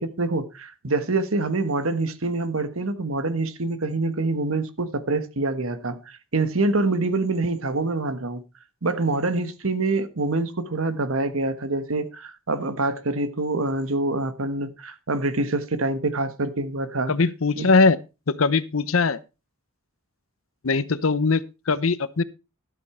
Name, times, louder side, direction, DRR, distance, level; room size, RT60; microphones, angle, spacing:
voice 1, 0.0-8.4 8.8-17.1 17.6-17.7, right 2 dB, 85° right, 1.3 m, -26 dB
voice 2, 17.1-18.0 18.3-19.2 20.6-22.2, left 4 dB, 80° left, 0.8 m, -21 dB
12.5 x 8.5 x 4.3 m
head